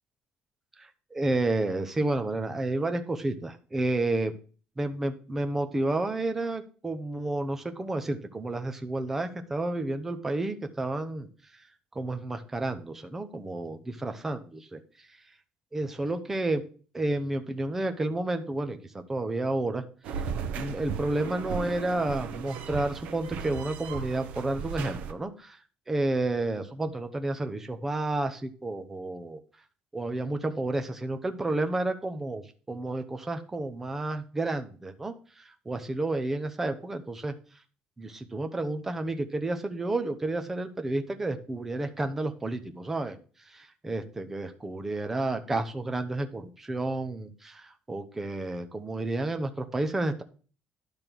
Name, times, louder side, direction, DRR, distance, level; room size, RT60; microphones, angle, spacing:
voice 1, 0.8-4.3 4.8-11.3 11.9-14.8 15.7-16.6 16.9-18.8 19.1-19.8 20.5-25.6 25.9-29.4 29.9-37.4 38.0-43.2 43.5-50.2, right 2 dB, 10° right, 6 dB, 0.8 m, -31 dB
sound 1, 20.0-25.1, right 6 dB, 65° right, 1.0 m, -36 dB
11.0 x 5.3 x 6.1 m, 0.39 s
cardioid pair, 175°, 3 cm